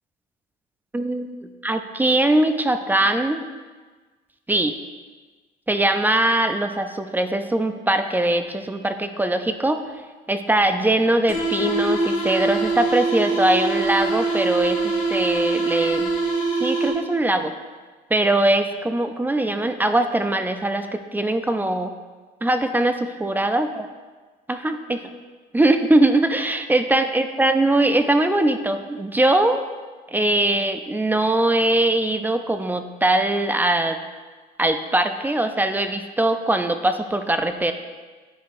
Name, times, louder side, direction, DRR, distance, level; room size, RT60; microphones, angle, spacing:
voice 1, 0.9-1.4 1.6-3.4 4.5-4.7 5.7-9.8 10.3-16.1 16.6-17.5 18.1-21.9 22.4-23.9 24.5-25.0 25.5-29.6 30.1-34.0 34.6-37.7, right 1 dB, 10° right, 8 dB, 0.4 m, -21 dB
sound 1, 11.3-17.2, right 3 dB, 85° left, 2.0 m, -23 dB
10.0 x 4.5 x 2.5 m, 1.4 s
cardioid pair, 110°, 17 cm